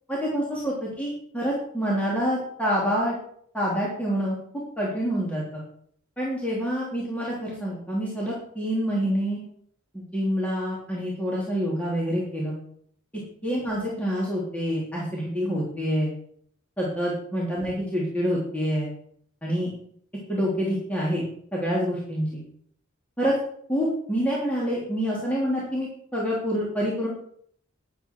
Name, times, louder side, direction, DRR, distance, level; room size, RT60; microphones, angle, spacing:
voice 1, 0.1-3.2 3.5-4.4 4.8-5.6 6.2-9.4 9.9-12.6 13.4-16.1 16.8-18.9 19.4-19.7 20.3-21.2 21.5-22.4 23.2-23.3 23.7-27.1, equal, 5° left, -6 dB, 3.2 m, -27 dB
12.5 x 10.5 x 4.7 m, 0.63 s
head